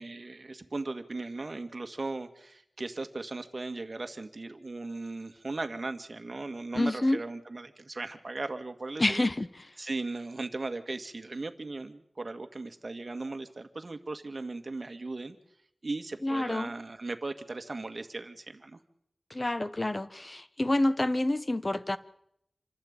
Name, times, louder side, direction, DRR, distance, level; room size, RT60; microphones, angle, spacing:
voice 1, 0.0-9.2 9.8-15.4 15.8-18.8, right 3 dB, 50° right, 2.0 m, -37 dB
voice 2, 6.7-7.2 9.0-9.5 16.2-16.7 19.3-22.0, left 1 dB, 30° left, 1.3 m, -28 dB
27.5 x 12.0 x 9.0 m
wide cardioid pair, 50°, 0 cm